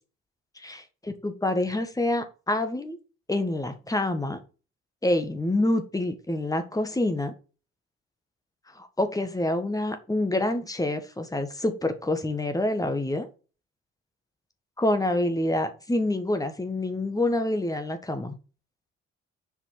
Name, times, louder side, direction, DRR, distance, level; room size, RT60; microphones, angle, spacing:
voice 1, 1.2-3.0 3.3-4.4 5.0-7.3 9.0-13.3 14.8-18.4, left 1 dB, 10° left, 8 dB, 1.7 m, -27 dB
7.2 x 5.0 x 6.3 m, 0.34 s
figure-of-eight pair, 45°, 34 cm